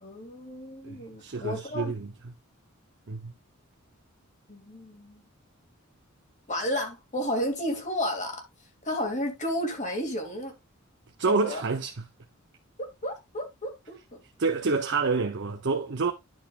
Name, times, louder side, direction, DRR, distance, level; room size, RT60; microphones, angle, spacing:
voice 1, 0.0-2.0 4.5-5.2 6.5-10.5 11.3-11.6 12.8-14.2, equal, 35° left, 2.5 m, -32 dB
voice 2, 0.8-2.1 3.1-3.3 11.2-11.9 14.4-16.1, right 4 dB, 55° right, 0.8 m, -28 dB
10.5 x 6.3 x 2.4 m
head